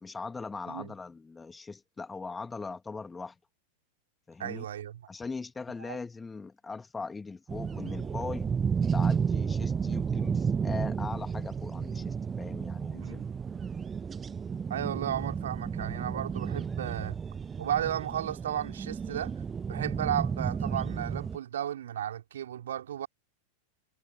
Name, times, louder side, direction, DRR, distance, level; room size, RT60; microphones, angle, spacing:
voice 1, 0.0-3.4 4.3-4.7 5.1-8.5 8.9-13.2, left 4 dB, 10° left, 2.7 m, -40 dB
voice 2, 4.4-5.0 5.9-6.0 12.9-13.3 14.7-17.2 17.6-19.3 19.7-23.1, right 10 dB, 60° right, 4.5 m, -34 dB
sound 1, 7.5-21.4, right 6 dB, 20° right, 0.3 m, -32 dB
figure-of-eight pair, 90°, 0 cm